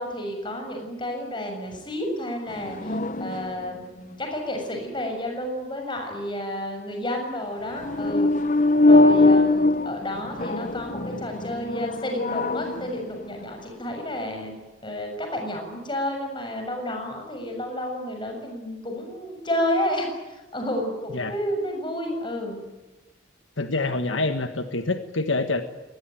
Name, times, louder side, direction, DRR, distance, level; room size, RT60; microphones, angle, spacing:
voice 1, 0.0-8.3 8.8-14.5 14.8-22.6, left 1 dB, 25° left, 3 dB, 6.9 m, -31 dB
sound 1, 2.5-3.8 7.8-13.3, left 2 dB, 40° left, 0.8 m, -22 dB
voice 2, 23.6-25.6, left 3 dB, 70° left, 8 dB, 1.5 m, -26 dB
24.0 x 20.5 x 9.1 m, 1.1 s
head